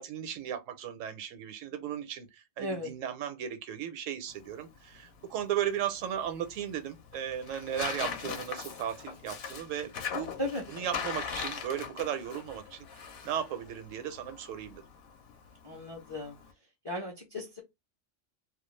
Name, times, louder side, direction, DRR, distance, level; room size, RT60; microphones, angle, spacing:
voice 1, 0.0-10.3 10.7-14.8, right 9 dB, 85° right, 0.9 m, -36 dB
voice 2, 2.6-2.9 10.4-10.6 15.6-16.4 16.8-17.6, left 1 dB, 35° left, 0.4 m, -36 dB
Tearing, 4.3-16.5, left 6 dB, 60° left, 0.8 m, -41 dB
2.3 x 2.2 x 3.1 m
omnidirectional pair, 1.3 m